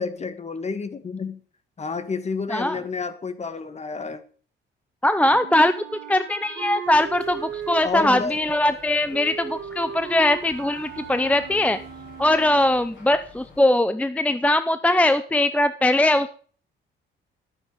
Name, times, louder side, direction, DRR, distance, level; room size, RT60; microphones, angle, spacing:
voice 1, 0.0-1.4 1.8-4.2 7.8-8.4, left 4 dB, 35° left, 11 dB, 1.6 m, -30 dB
voice 2, 5.0-5.7 6.1-11.8 12.2-16.4, left 1 dB, 5° left, 12 dB, 0.6 m, -21 dB
Wind instrument woodwind instrument, 5.2-13.0, right 8 dB, 75° right, 2.0 m, -38 dB
sound 1, 6.8-13.6, left 3 dB, 70° left, 7.1 m, -49 dB
12.5 x 9.1 x 5.0 m, 0.43 s
cardioid pair, 90°, 20 cm